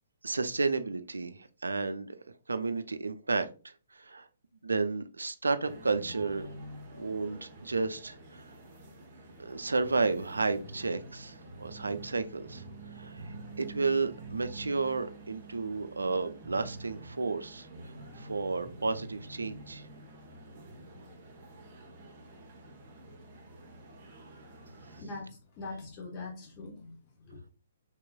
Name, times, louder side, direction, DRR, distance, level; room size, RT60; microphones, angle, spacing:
voice 1, 0.2-2.2 2.5-4.3 4.6-6.5 7.0-8.5 9.4-17.7 18.1-19.9, right 3 dB, 80° right, 10 dB, 0.3 m, -32 dB
sound 1, 5.6-25.0, right 2 dB, 35° right, 1.0 m, -47 dB
voice 2, 25.0-27.5, left 3 dB, 30° left, -1 dB, 1.0 m, -43 dB
3.5 x 3.0 x 2.2 m, 0.34 s
figure-of-eight pair, 130°, 0 cm